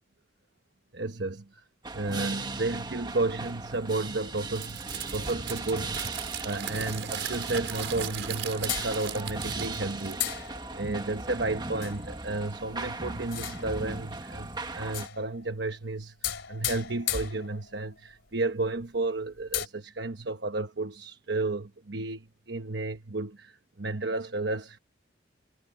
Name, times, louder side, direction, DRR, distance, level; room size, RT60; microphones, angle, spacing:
voice 1, 0.9-1.6 1.9-6.2 6.4-10.2 10.7-24.8, right 2 dB, 70° right, 1.1 m, -32 dB
sound 1, 1.8-15.1, right 3 dB, 25° right, 1.5 m, -37 dB
Crumpling crinkling, 4.5-10.5, right 10 dB, 85° right, 4.7 m, -38 dB
sound 2, 8.7-9.5 10.2-11.0 11.8-12.1 13.2-13.9 14.8-15.5 16.2-17.9 18.4-18.5 18.8-18.9 19.4-19.7, left 12 dB, 85° left, 2.9 m, -35 dB
head